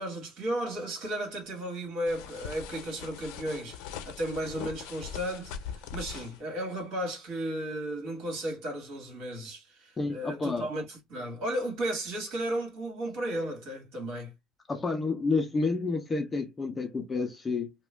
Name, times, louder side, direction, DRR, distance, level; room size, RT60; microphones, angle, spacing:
voice 1, 0.0-14.3, right 1 dB, 55° right, 1.8 m, -34 dB
sound 1, 2.1-6.4, left 8 dB, 85° left, 0.6 m, -41 dB
voice 2, 10.0-10.7 14.7-17.7, left 3 dB, 15° left, 0.5 m, -30 dB
3.0 x 2.2 x 3.2 m
cardioid pair, 180°, 0 cm